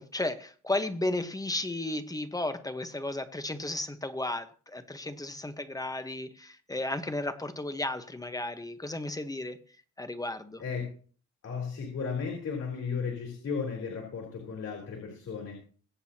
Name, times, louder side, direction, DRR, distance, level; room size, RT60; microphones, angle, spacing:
voice 1, 0.0-9.6 10.0-10.6, left 2 dB, 10° left, 9 dB, 1.2 m, -34 dB
voice 2, 11.4-15.6, left 5 dB, 55° left, 0 dB, 4.1 m, -35 dB
23.0 x 7.9 x 2.9 m, 0.44 s
cardioid pair, 90°, 30 cm